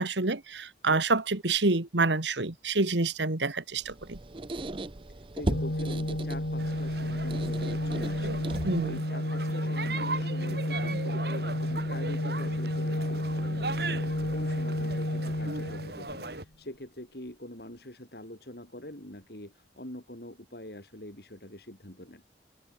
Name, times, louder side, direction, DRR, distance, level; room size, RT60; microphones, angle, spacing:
voice 1, 0.0-4.2 8.6-9.0, right 3 dB, 85° right, 2.0 m, -27 dB
Squeak, 3.8-9.0, right 2 dB, 30° right, 0.7 m, -37 dB
voice 2, 5.1-22.2, left 1 dB, 60° left, 4.5 m, -44 dB
Organ, 5.5-16.4, left 1 dB, 80° left, 3.4 m, -31 dB
sound 1, 6.6-16.4, right 3 dB, 60° right, 5.7 m, -38 dB
head